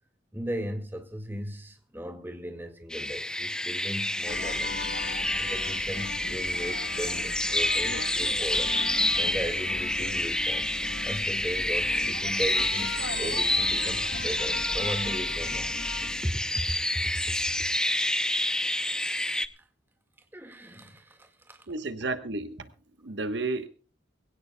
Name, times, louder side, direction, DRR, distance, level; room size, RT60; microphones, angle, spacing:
voice 1, 0.3-4.9 5.4-8.8 9.2-10.7 11.0-15.8 16.2-17.0 19.6-19.7 20.3-21.7, equal, 10° right, 1.8 m, -37 dB
sound 1, 2.9-19.5, left 1 dB, 5° left, 0.6 m, -28 dB
sound 2, 4.3-16.2, left 4 dB, 80° left, 1.5 m, -38 dB
voice 2, 21.7-22.7 23.0-23.7, right 3 dB, 65° right, 1.2 m, -32 dB
23.0 x 17.0 x 2.3 m
head